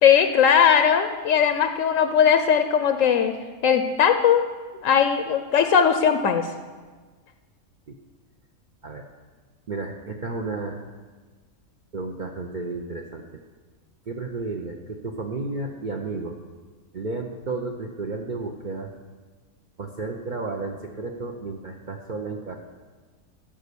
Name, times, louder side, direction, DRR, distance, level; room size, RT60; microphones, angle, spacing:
voice 1, 0.0-3.3 3.6-4.4 4.8-6.5, left 7 dB, 75° left, 8 dB, 0.9 m, -19 dB
voice 2, 9.7-10.8 11.9-13.4 14.1-16.4 16.9-18.9 19.8-22.6, right 3 dB, 45° right, 1 dB, 0.7 m, -32 dB
12.0 x 5.3 x 6.8 m, 1.4 s
omnidirectional pair, 1.4 m